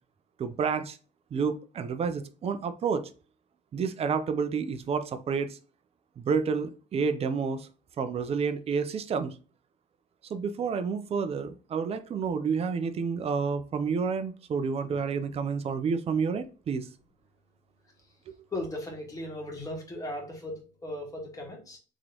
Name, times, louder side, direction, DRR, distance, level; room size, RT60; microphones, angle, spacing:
voice 1, 0.4-1.0 1.3-3.1 3.7-5.6 6.2-7.7 8.0-9.3 10.3-16.9, right 5 dB, 35° right, 0.5 m, -29 dB
voice 2, 18.5-21.8, left 1 dB, 20° left, 1.7 m, -37 dB
3.8 x 3.1 x 2.9 m
cardioid pair, 110°, 17 cm